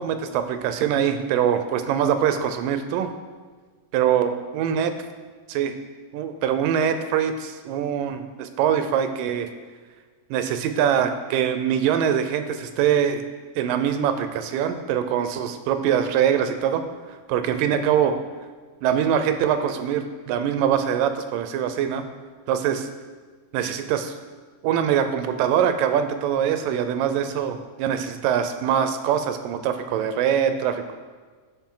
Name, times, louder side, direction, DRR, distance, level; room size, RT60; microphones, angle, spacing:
voice 1, 0.0-3.1 3.9-4.9 5.5-5.7 6.1-9.5 10.3-13.2 13.6-16.8 17.3-18.2 18.8-22.1 22.5-22.9 23.5-24.1 24.6-31.0, right 9 dB, 85° right, 8 dB, 2.3 m, -23 dB
13.0 x 4.6 x 3.8 m, 1.5 s
omnidirectional pair, 3.8 m